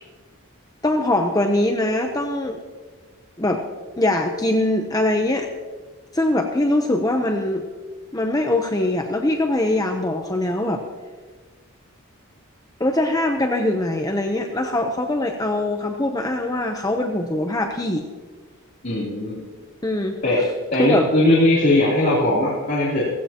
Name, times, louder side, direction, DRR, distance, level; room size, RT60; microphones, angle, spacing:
voice 1, 0.8-2.6 3.4-3.6 4.0-5.5 6.1-7.6 8.1-10.8 12.8-18.0 19.8-20.2 20.8-21.1, left 1 dB, 15° left, 3 dB, 0.7 m, -22 dB
voice 2, 18.8-19.4 20.2-20.4 20.7-23.0, left 1 dB, 45° left, -8 dB, 3.2 m, -19 dB
16.0 x 15.5 x 2.9 m, 1.4 s
head